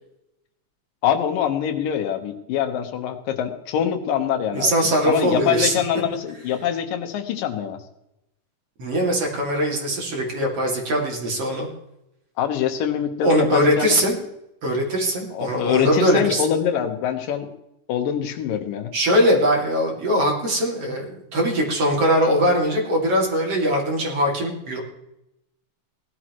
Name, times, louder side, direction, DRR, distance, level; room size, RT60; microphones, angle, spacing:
voice 1, 1.0-4.7 5.1-7.8 12.4-14.0 15.3-17.5 17.9-18.9, left 9 dB, 90° left, 6 dB, 2.9 m, -24 dB
voice 2, 4.5-5.7 8.8-11.7 13.2-14.2 14.6-16.4 18.9-24.8, equal, 45° right, 0 dB, 3.3 m, -21 dB
18.0 x 12.0 x 3.1 m, 0.85 s
omnidirectional pair, 3.8 m